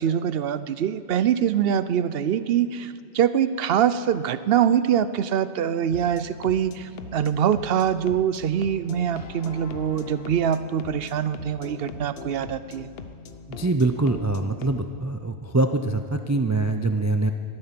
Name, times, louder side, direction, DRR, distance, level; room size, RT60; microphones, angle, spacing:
voice 1, 0.0-12.9, right 9 dB, 65° right, 14 dB, 0.8 m, -24 dB
sound 1, 5.9-14.8, left 5 dB, 65° left, 1.0 m, -41 dB
voice 2, 13.5-17.3, right 2 dB, 25° right, 7 dB, 0.4 m, -24 dB
19.0 x 13.0 x 5.9 m, 2.2 s
omnidirectional pair, 1.1 m